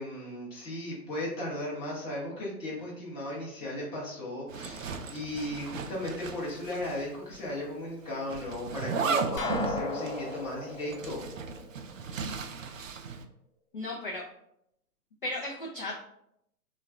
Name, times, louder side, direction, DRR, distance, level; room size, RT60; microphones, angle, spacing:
voice 1, 0.0-11.2, left 1 dB, 10° left, -5 dB, 0.8 m, -36 dB
Zipper (clothing), 4.5-7.1 7.3-7.4 8.3-13.2, right 4 dB, 55° right, 0.5 m, -35 dB
sound 1, 9.4-12.2, left 2 dB, 50° left, 0.9 m, -36 dB
voice 2, 13.7-14.2 15.2-15.9, left 1 dB, 35° left, -3 dB, 0.4 m, -35 dB
3.5 x 2.3 x 3.5 m, 0.76 s
figure-of-eight pair, 125°, 49 cm